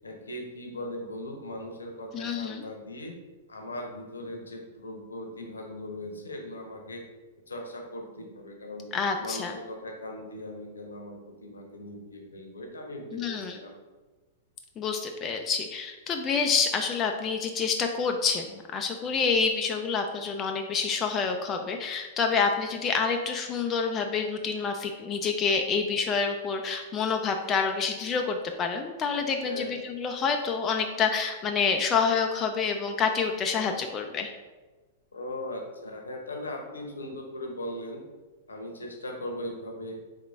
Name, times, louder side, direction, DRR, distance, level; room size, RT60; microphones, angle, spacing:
voice 1, 0.0-3.1 3.5-7.0 7.5-8.9 9.2-13.8 29.2-29.8 35.1-38.0 38.5-40.0, left 1 dB, 75° left, 2 dB, 0.8 m, -39 dB
voice 2, 2.1-2.6 8.9-9.5 13.1-13.6 14.8-34.3, left 5 dB, 25° left, 4 dB, 0.3 m, -28 dB
3.6 x 3.5 x 3.4 m, 1.3 s
figure-of-eight pair, 100°, 0 cm